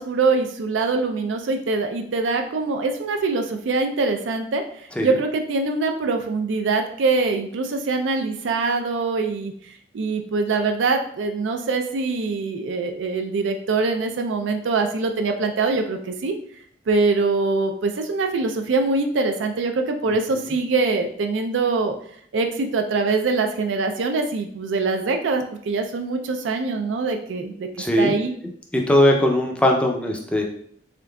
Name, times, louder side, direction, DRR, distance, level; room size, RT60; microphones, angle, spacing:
voice 1, 0.0-9.5 9.9-16.3 16.9-21.9 22.3-27.7 28.0-28.3, right 3 dB, 85° right, 5 dB, 0.4 m, -23 dB
voice 2, 27.8-28.1 28.7-30.4, left 1 dB, 5° left, 1 dB, 0.4 m, -19 dB
3.7 x 3.5 x 2.2 m, 0.62 s
head